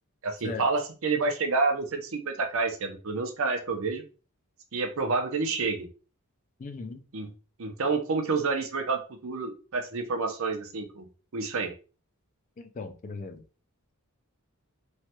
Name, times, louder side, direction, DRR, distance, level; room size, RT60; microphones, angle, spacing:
voice 1, 0.2-4.0 4.7-5.9 7.1-7.3 7.6-11.1 11.3-11.7, right 4 dB, 65° right, 0.6 m, -29 dB
voice 2, 6.6-7.0 12.6-13.4, left 3 dB, 35° left, 0.4 m, -38 dB
3.2 x 2.2 x 2.8 m
head